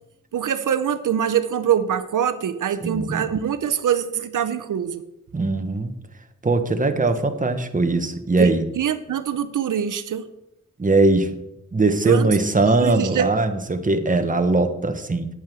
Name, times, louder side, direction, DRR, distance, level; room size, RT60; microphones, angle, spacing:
voice 1, 0.3-5.0 8.4-10.3 12.0-12.3 12.6-13.3, right 9 dB, 85° right, 11 dB, 0.7 m, -24 dB
voice 2, 2.8-3.3 5.3-5.9 6.4-8.6 10.8-11.3 11.7-15.3, right 2 dB, 25° right, 7 dB, 1.3 m, -20 dB
9.6 x 8.6 x 6.1 m, 0.87 s
wide cardioid pair, 80°, 30 cm